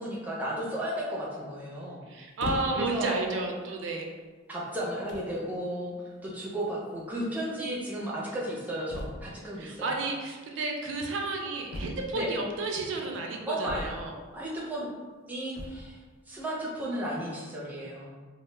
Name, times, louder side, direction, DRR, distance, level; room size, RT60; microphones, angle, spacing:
voice 1, 0.0-2.0 2.7-3.1 4.5-5.9 6.2-9.9 12.1-12.3 13.4-13.8 14.3-14.9 15.3-16.0 16.3-18.1, right 1 dB, 10° right, -6 dB, 0.4 m, -34 dB
voice 2, 2.1-4.1 9.6-14.1, right 3 dB, 70° right, 1 dB, 0.4 m, -32 dB
sound 1, 2.4-3.0 3.8-3.9 4.7-4.8 5.1-5.4 6.6-6.7 6.9-7.0 7.2-7.3 8.9-9.4 11.7-12.4 13.6-14.3 15.5-15.9, left 1 dB, 55° left, 0.3 m, -38 dB
2.0 x 2.0 x 3.2 m, 1.4 s
head